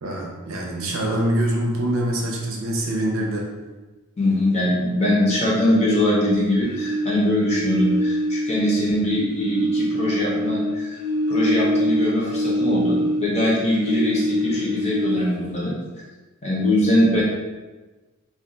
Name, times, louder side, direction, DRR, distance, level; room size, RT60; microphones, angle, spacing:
voice 1, 0.0-3.5, right 1 dB, 65° right, -1 dB, 0.6 m, -24 dB
voice 2, 4.2-11.0 11.3-15.7 16.4-17.2, left 1 dB, 30° left, -5 dB, 0.7 m, -22 dB
sound 1, 6.6-9.1 9.4-13.3 13.7-15.4, equal, 80° left, 0.6 m, -24 dB
2.4 x 2.3 x 3.8 m, 1.2 s
head